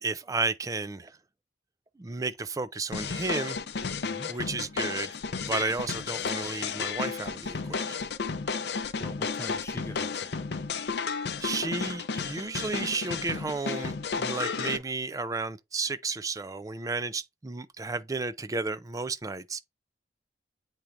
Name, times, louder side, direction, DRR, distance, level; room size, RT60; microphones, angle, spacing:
voice 1, 0.0-1.2 2.0-3.6 4.3-8.1 11.4-19.6, right 3 dB, 20° right, 0.4 m, -33 dB
junk break, 2.9-14.8, left 5 dB, 65° left, 0.6 m, -33 dB
voice 2, 3.9-4.3 9.0-10.4, left 1 dB, 15° left, 0.7 m, -43 dB
8.3 x 4.5 x 2.5 m
head